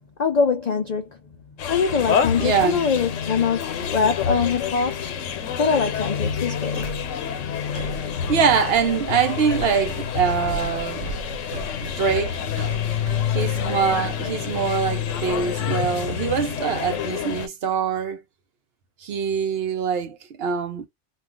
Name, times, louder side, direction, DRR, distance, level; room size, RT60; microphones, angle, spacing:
voice 1, 0.2-1.1 1.7-5.0 5.6-6.9, left 5 dB, 65° left, 0.4 m, -23 dB
sound 1, 1.6-17.5, left 8 dB, 85° left, 1.0 m, -27 dB
voice 2, 2.4-2.9 8.3-11.1 11.8-12.4 13.3-18.2 19.0-20.9, right 7 dB, 60° right, 0.8 m, -23 dB
sound 2, 6.8-15.9, right 3 dB, 85° right, 0.9 m, -38 dB
2.3 x 2.3 x 3.6 m
omnidirectional pair, 1.3 m